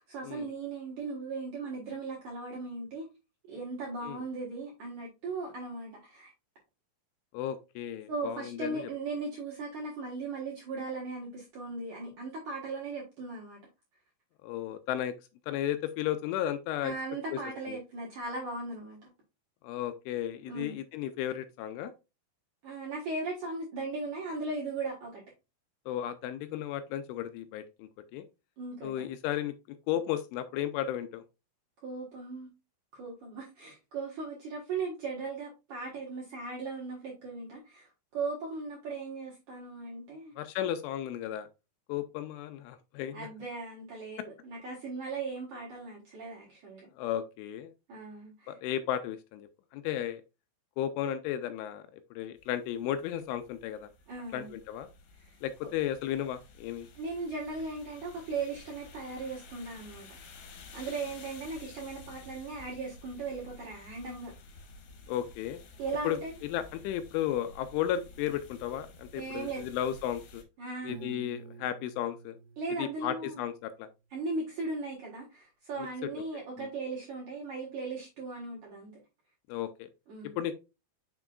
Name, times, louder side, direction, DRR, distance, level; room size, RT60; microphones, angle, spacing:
voice 1, 0.0-3.1 3.5-6.3 8.1-13.6 16.8-19.0 20.5-20.8 22.6-25.2 28.6-29.1 31.8-32.5 32.9-40.3 43.1-46.9 47.9-48.6 54.1-54.5 55.2-55.4 55.6-55.7 56.9-60.1 60.7-64.3 65.8-66.4 69.1-69.7 70.6-70.9 72.6-73.4 74.1-78.9 80.1-80.4, right 3 dB, 70° right, 1.9 m, -38 dB
voice 2, 7.3-8.8 14.4-15.1 15.5-16.9 17.3-17.4 17.7-17.8 19.6-21.9 25.9-28.3 28.8-29.5 29.9-31.2 40.4-41.5 41.9-43.3 47.0-47.7 48.5-50.2 50.8-53.9 54.3-54.9 55.4-56.9 65.1-65.6 66.0-66.2 66.5-70.4 70.8-72.4 72.8-73.9 75.8-75.9 76.6-76.7 79.5-79.9 80.4-80.5, left 11 dB, 85° left, 2.8 m, -34 dB
sound 1, 52.4-70.4, left 3 dB, 65° left, 3.0 m, -52 dB
Piano, 70.9-73.8, right 6 dB, 90° right, 1.9 m, -49 dB
6.8 x 5.9 x 2.4 m
omnidirectional pair, 5.7 m